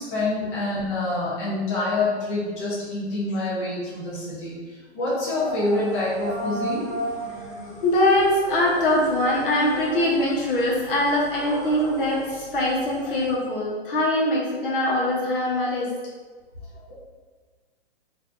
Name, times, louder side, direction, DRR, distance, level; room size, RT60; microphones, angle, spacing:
voice 1, 0.0-6.8, left 2 dB, 25° left, -9 dB, 0.7 m, -26 dB
sound 1, 5.0-13.3, right 2 dB, 20° right, 0.5 m, -35 dB
voice 2, 7.8-15.9, left 1 dB, 55° left, -4 dB, 1.2 m, -22 dB
3.9 x 2.7 x 2.6 m, 1.4 s
hypercardioid pair, 160°, 33 cm